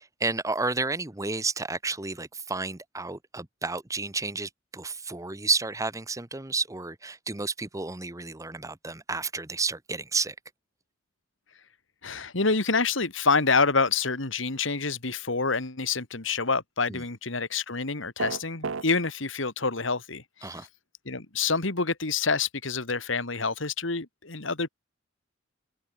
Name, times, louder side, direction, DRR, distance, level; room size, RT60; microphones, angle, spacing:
voice 1, 0.0-10.3 16.9-17.0 20.4-20.7, right 3 dB, 15° right, 1.1 m, -31 dB
voice 2, 12.0-20.7 21.1-24.7, left 4 dB, 70° left, 2.3 m, -27 dB
sound 1, 18.2-18.9, right 4 dB, 90° right, 0.8 m, -31 dB
head